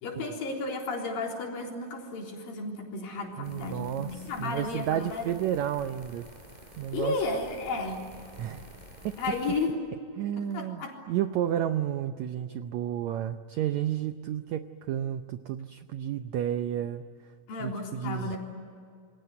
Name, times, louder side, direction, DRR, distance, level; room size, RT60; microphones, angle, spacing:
voice 1, 0.0-5.4 6.9-8.0 9.2-9.8 10.4-11.0 17.5-18.4, left 3 dB, 70° left, 0 dB, 5.5 m, -33 dB
voice 2, 3.3-4.1 4.4-6.3 6.8-7.2 8.4-8.7 9.0-9.1 10.2-17.0 17.6-18.4, right 10 dB, 90° right, 9 dB, 1.5 m, -31 dB
sound 1, 3.4-9.7, right 1 dB, 10° right, 5.4 m, -50 dB
27.5 x 22.5 x 9.6 m, 2.3 s
omnidirectional pair, 4.2 m